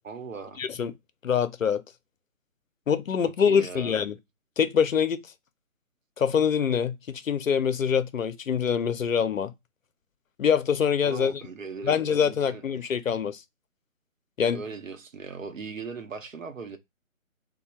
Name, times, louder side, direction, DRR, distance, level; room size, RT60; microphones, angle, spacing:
voice 1, 0.0-0.6 3.2-4.0 11.0-12.9 14.5-16.8, right 5 dB, 70° right, 0.8 m, -39 dB
voice 2, 0.6-0.9 1.2-1.8 2.9-4.2 4.6-5.2 6.2-9.5 10.4-11.4 11.8-13.4 14.4-14.6, left 7 dB, 70° left, 0.5 m, -24 dB
3.1 x 2.2 x 4.2 m
figure-of-eight pair, 150°, 42 cm